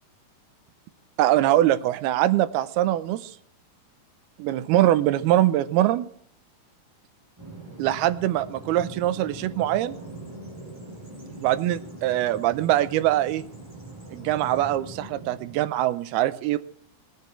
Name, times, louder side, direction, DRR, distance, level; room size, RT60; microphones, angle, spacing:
voice 1, 1.2-3.3 4.4-6.1 7.8-10.0 11.4-13.4 14.1-16.6, right 14 dB, 85° right, 13 dB, 2.6 m, -23 dB
Bird vocalization bird call bird song, 7.4-15.7, right 1 dB, 5° right, 6.0 m, -42 dB
20.0 x 9.6 x 4.4 m, 0.63 s
omnidirectional pair, 4.5 m